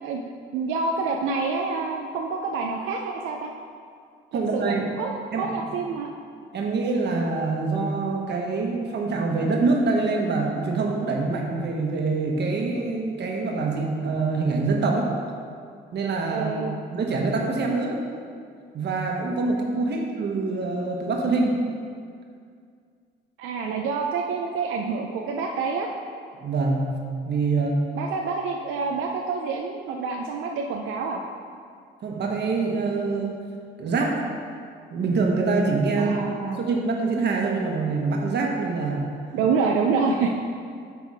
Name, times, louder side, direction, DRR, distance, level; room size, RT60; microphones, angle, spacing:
voice 1, 0.0-3.5 4.3-6.1 16.3-16.8 23.4-25.9 27.9-31.2 36.0-36.6 39.3-40.3, right 4 dB, 90° right, 1 dB, 0.5 m, -27 dB
voice 2, 4.3-4.8 5.3-5.5 6.5-15.1 15.9-16.5 16.9-18.0 18.7-21.6 26.4-26.9 27.2-27.8 32.0-33.3 33.8-34.2 34.9-36.2 36.5-39.1, right 3 dB, 60° right, 0 dB, 1.2 m, -25 dB
8.4 x 3.5 x 4.8 m, 2.2 s
cardioid pair, 90°, 20 cm